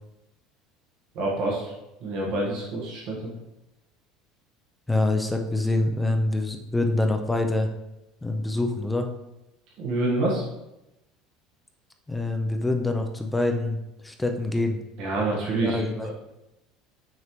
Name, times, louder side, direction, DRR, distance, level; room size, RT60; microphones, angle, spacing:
voice 1, 1.1-1.7 2.0-3.3 9.8-10.4 15.0-16.1, right 2 dB, 50° right, -4 dB, 1.3 m, -27 dB
voice 2, 4.9-7.7 8.2-9.1 12.1-13.8 14.0-14.8 15.6-16.1, left 2 dB, 5° left, 5 dB, 0.4 m, -25 dB
6.4 x 5.2 x 3.0 m, 0.92 s
cardioid pair, 180°, 0 cm